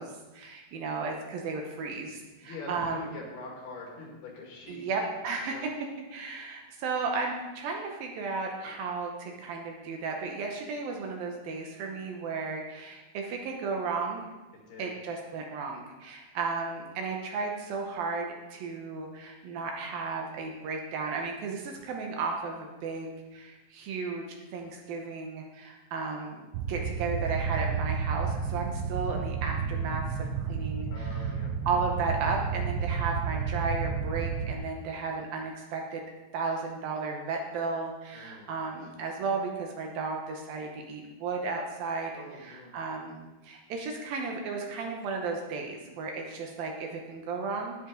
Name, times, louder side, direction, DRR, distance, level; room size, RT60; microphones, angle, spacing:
voice 1, 0.0-3.0 4.7-5.6 6.1-14.3 14.8-24.2 24.5-31.2 31.7-36.0 36.3-42.1 42.4-47.9, right 4 dB, 70° right, 1 dB, 2.5 m, -34 dB
voice 2, 2.4-4.9 5.5-5.6 14.7-15.0 28.4-28.7 30.9-31.6 38.1-38.9 42.1-42.8, left 2 dB, 70° left, -1 dB, 4.1 m, -44 dB
sound 1, 26.5-34.5, right 6 dB, 85° right, 2.9 m, -31 dB
10.5 x 9.9 x 3.8 m, 1.1 s
omnidirectional pair, 4.8 m